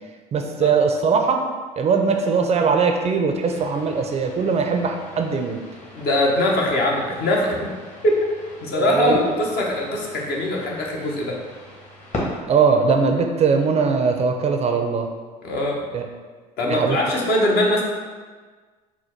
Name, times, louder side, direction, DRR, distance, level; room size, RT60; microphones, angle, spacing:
voice 1, 0.3-1.4 1.8-5.6 8.7-9.2 12.5-15.1 15.9-16.0 16.7-17.0, right 5 dB, 35° right, 4 dB, 0.5 m, -20 dB
sound 1, 3.4-12.4, left 1 dB, 35° left, 1.4 m, -38 dB
voice 2, 5.9-7.7 8.0-8.2 8.6-11.4 15.4-15.8 16.6-17.8, left 1 dB, 55° left, -2 dB, 1.0 m, -22 dB
4.3 x 2.2 x 4.4 m, 1.4 s
hypercardioid pair, 70°, 19 cm